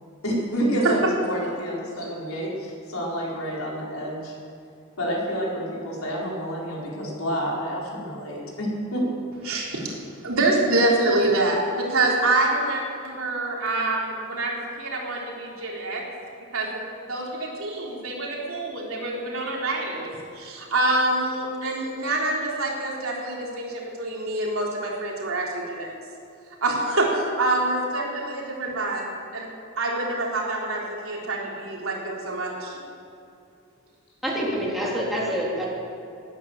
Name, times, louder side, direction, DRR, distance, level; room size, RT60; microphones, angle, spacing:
voice 1, 0.2-4.3 5.0-9.0, equal, 80° left, -3 dB, 4.4 m, -28 dB
voice 2, 9.5-16.0 16.5-16.8 17.1-25.9 26.6-29.5 29.8-32.7, right 2 dB, 75° right, -3 dB, 3.7 m, -26 dB
voice 3, 34.2-35.7, equal, ahead, -6 dB, 3.4 m, -26 dB
18.5 x 9.7 x 7.4 m, 2.5 s
head